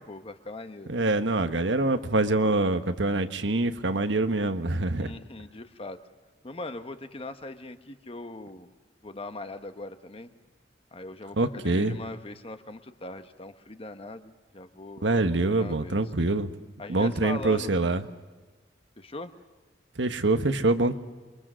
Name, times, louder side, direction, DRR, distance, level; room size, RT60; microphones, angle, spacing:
voice 1, 0.0-0.9 5.0-6.0 6.4-8.7 9.0-10.3 10.9-15.1 15.6-16.0 16.8-17.7 19.0-19.3, left 2 dB, 30° left, 9 dB, 1.2 m, -40 dB
voice 2, 0.9-5.1 11.4-12.0 15.0-16.6 16.9-18.0 20.0-20.9, right 2 dB, 85° right, 9 dB, 1.3 m, -25 dB
28.5 x 23.0 x 6.3 m, 1.3 s
head